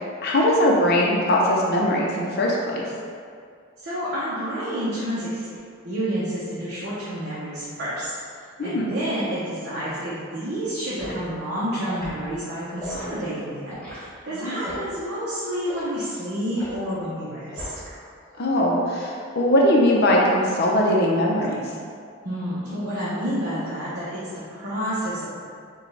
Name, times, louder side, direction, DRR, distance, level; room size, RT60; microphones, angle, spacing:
voice 1, 0.2-2.8 8.6-8.9 14.3-14.6 18.4-21.6, left 1 dB, 50° left, -3 dB, 0.6 m, -20 dB
voice 2, 3.8-5.5 5.8-8.1 8.6-17.7 22.2-25.3, equal, 50° right, -10 dB, 0.7 m, -29 dB
Liquid, 11.0-11.2 11.8-12.1 12.8-13.1 13.7-14.0 14.6-14.9 15.6-15.9 16.6-16.8 17.5-17.9 18.3-18.6, equal, 5° left, 1.0 m, -37 dB
5.0 x 2.3 x 3.2 m, 2.2 s
head